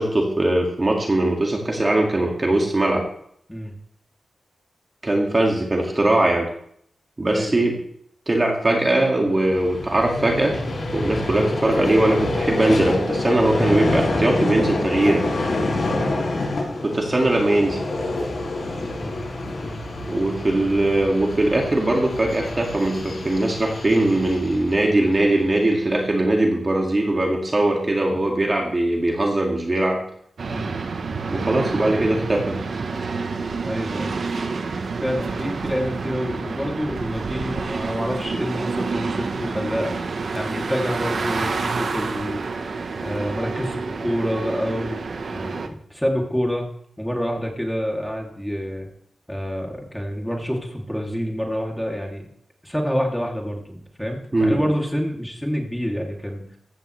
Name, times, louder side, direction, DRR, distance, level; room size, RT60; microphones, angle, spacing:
voice 1, 0.0-3.0 5.0-6.5 7.2-7.8 8.3-10.5 10.9-15.2 16.8-17.8 20.0-30.0 31.3-32.6 54.3-54.6, right 1 dB, 30° right, 0 dB, 2.1 m, -20 dB
Vehicle, 9.3-25.7, left 2 dB, 60° left, 5.9 m, -27 dB
sound 1, 30.4-45.7, right 4 dB, 60° right, 1.1 m, -28 dB
voice 2, 33.6-34.2 35.0-40.0 40.3-42.5 43.0-45.0 45.3-46.7 47.0-48.9 49.3-52.2 52.6-56.4, equal, 5° left, 0 dB, 2.7 m, -27 dB
15.5 x 13.5 x 3.3 m, 0.68 s
wide cardioid pair, 115°, 0 cm